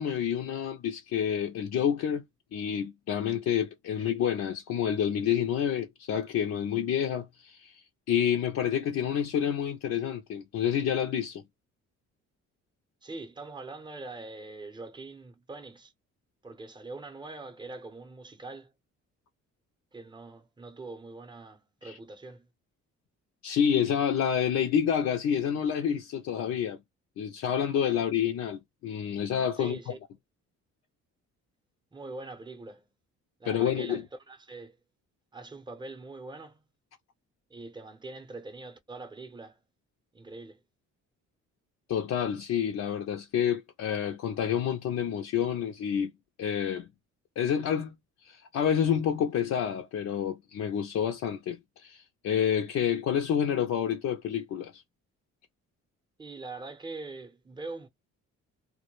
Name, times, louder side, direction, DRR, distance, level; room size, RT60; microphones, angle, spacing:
voice 1, 0.0-2.2 2.5-11.4 21.8-22.0 23.4-26.8 27.2-29.9 33.4-34.1 41.9-46.1 46.4-46.9 47.4-54.8, left 8 dB, 60° left, 0.5 m, -28 dB
voice 2, 13.0-15.9 16.4-18.7 19.9-22.5 27.9-28.0 29.6-30.0 31.9-32.9 33.4-34.8 35.3-36.6 37.5-39.6 40.1-40.6 56.2-57.9, right 3 dB, 15° right, 0.7 m, -43 dB
2.1 x 2.1 x 2.9 m
cardioid pair, 90°, 30 cm